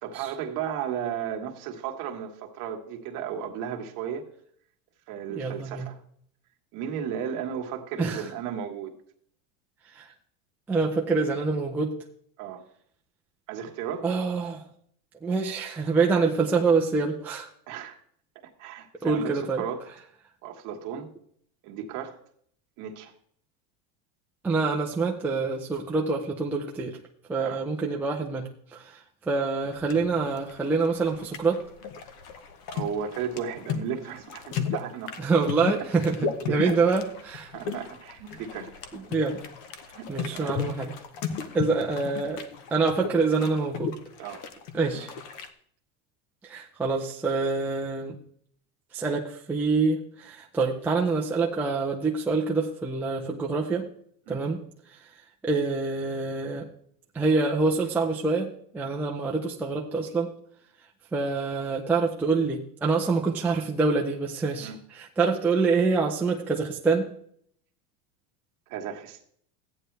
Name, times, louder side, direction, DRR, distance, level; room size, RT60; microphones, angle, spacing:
voice 1, 0.0-4.2 5.1-6.0 6.7-8.9 12.4-12.6 13.5-14.1 17.7-18.0 18.6-19.8 20.4-21.1 21.6-22.2 22.8-23.1 27.4-27.6 32.7-35.2 36.2-36.8 37.5-38.7 39.9-40.6 44.2-44.4 54.3-54.4 64.6-64.8 68.7-69.2, right 8 dB, 45° right, 2 dB, 1.7 m, -34 dB
voice 2, 5.3-5.9 8.0-8.3 9.9-10.1 10.7-11.9 14.0-14.6 15.2-17.5 19.0-19.6 24.4-27.0 27.3-29.0 29.3-31.6 35.2-36.2 36.5-37.5 38.9-39.4 40.1-40.9 41.5-42.4 42.7-43.9 44.7-45.1 46.4-48.2 48.9-53.9 54.3-54.6 55.4-56.7 57.1-60.3 61.1-67.1, right 4 dB, 5° right, -1 dB, 0.4 m, -26 dB
sound 1, 29.7-45.5, left 7 dB, 45° left, 1.1 m, -35 dB
14.5 x 9.3 x 3.3 m, 0.64 s
supercardioid pair, 160°, 44 cm